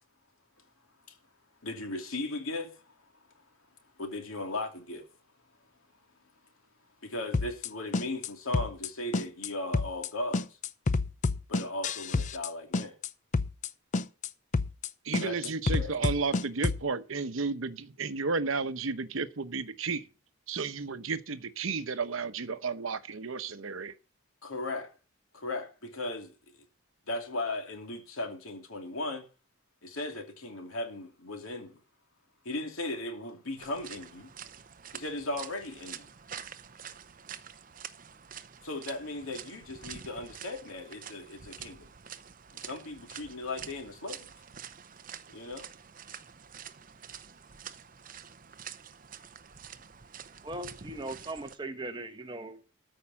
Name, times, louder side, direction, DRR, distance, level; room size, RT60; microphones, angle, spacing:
voice 1, 1.6-2.9 4.0-5.0 7.0-10.5 11.5-12.9 15.2-15.4 15.7-15.9 24.4-24.9 25.3-26.3 27.1-29.3 29.8-31.8 32.4-34.3 34.9-36.1 38.6-41.9 42.5-44.3 45.3-45.7, left 2 dB, 85° left, 2.6 m, -37 dB
sound 1, 7.3-7.7 7.9-8.3 8.5-8.9 9.1-9.5 9.7-10.1 10.3-12.5 12.7-13.1 13.3-13.7 13.9-14.3 14.5-14.9 15.1-16.8, left 3 dB, 35° left, 0.5 m, -29 dB
voice 2, 15.0-20.1 20.5-24.0, right 4 dB, 75° right, 0.9 m, -33 dB
sound 2, 33.6-51.6, right 8 dB, 40° right, 0.7 m, -47 dB
voice 3, 50.4-52.6, right 2 dB, 20° right, 1.3 m, -39 dB
13.5 x 5.4 x 7.1 m
head